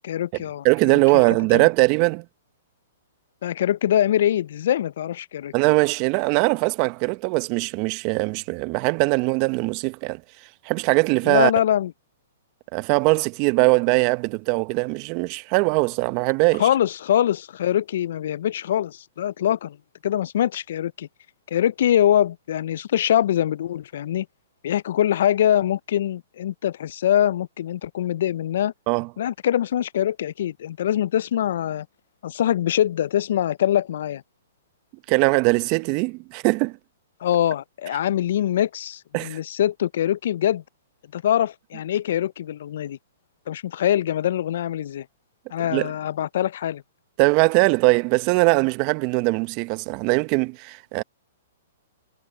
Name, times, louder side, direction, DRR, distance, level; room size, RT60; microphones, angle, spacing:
voice 1, 0.0-0.6 1.5-1.6 3.4-5.5 11.3-11.9 16.6-19.8 20.0-21.1 21.5-24.3 24.6-28.7 29.2-31.9 32.2-34.2 37.2-40.6 41.1-43.0 43.5-45.1 45.5-46.8, left 11 dB, 65° left, 0.3 m, -23 dB
voice 2, 0.6-2.2 5.5-10.2 10.6-11.5 12.7-16.7 28.9-29.1 35.1-36.8 39.1-39.4 45.7-45.9 47.2-51.0, right 27 dB, 40° right, 0.8 m, -21 dB
hypercardioid pair, 130°, 0 cm